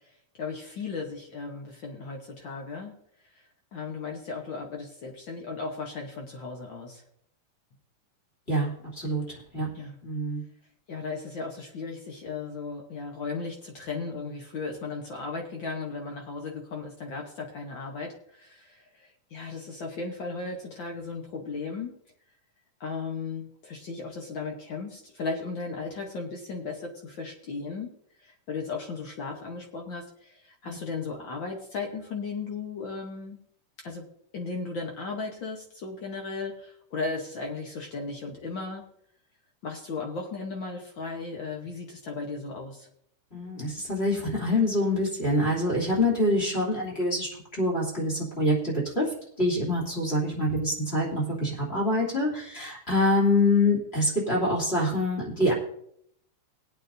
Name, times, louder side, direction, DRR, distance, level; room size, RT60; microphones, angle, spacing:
voice 1, 0.4-2.9 3.3-3.4 3.7-7.0 9.7-10.0 10.9-21.9 22.8-27.9 28.2-33.4 33.8-34.0 34.3-38.8 39.6-42.9, left 4 dB, 80° left, 1 dB, 1.0 m, -36 dB
voice 2, 8.5-9.2 9.5-9.7 10.0-10.4 30.6-30.8 43.3-55.5, left 1 dB, 20° left, -5 dB, 2.7 m, -26 dB
19.0 x 9.0 x 2.7 m, 0.71 s
omnidirectional pair, 3.9 m